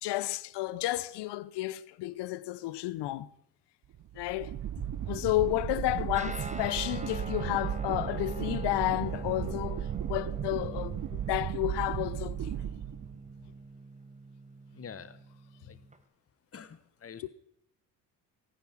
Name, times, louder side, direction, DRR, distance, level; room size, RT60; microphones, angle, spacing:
voice 1, 0.0-3.3 4.2-4.5 5.1-12.5 17.2-17.3, left 16 dB, 60° left, 0.7 m, -32 dB
sound 1, 3.9-13.4, right 11 dB, 40° right, 0.8 m, -35 dB
Guitar, 6.1-16.0, right 2 dB, 15° right, 1.6 m, -43 dB
voice 2, 14.7-15.2 15.7-15.8 16.5-17.3, left 7 dB, 30° left, 1.1 m, -46 dB
15.5 x 9.5 x 5.8 m
hypercardioid pair, 60°, 46 cm